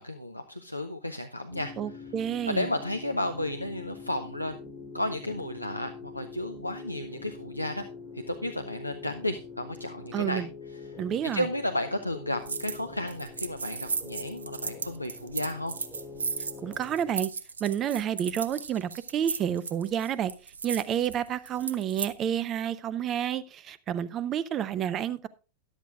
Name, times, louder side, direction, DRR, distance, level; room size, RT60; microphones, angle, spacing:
voice 1, 0.0-2.1 2.5-4.6 4.9-7.8 8.1-10.4 10.7-11.0 11.3-15.7, left 1 dB, 85° left, 0.7 m, -33 dB
sound 1, 1.5-17.1, left 4 dB, 5° left, 5.3 m, -44 dB
voice 2, 1.8-2.7 10.1-10.5 11.0-11.5 16.6-17.3 17.6-20.3 20.6-25.3, right 9 dB, 30° right, 0.8 m, -30 dB
sound 2, 12.4-12.8 13.1-22.1, right 5 dB, 70° right, 0.7 m, -36 dB
13.5 x 11.5 x 2.5 m
figure-of-eight pair, 90°, 0 cm